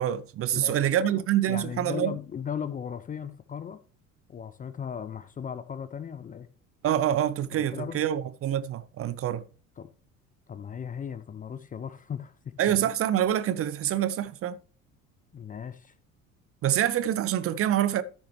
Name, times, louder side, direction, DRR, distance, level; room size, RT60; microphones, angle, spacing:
voice 1, 0.0-2.2 6.8-9.4 12.6-14.6 16.6-18.0, right 11 dB, 35° right, 0.6 m, -26 dB
voice 2, 0.5-3.8 4.3-6.5 7.5-8.0 9.8-9.9 10.5-12.9 15.3-15.9, left 7 dB, 20° left, 0.6 m, -37 dB
14.0 x 6.0 x 3.1 m
figure-of-eight pair, 60°, 40 cm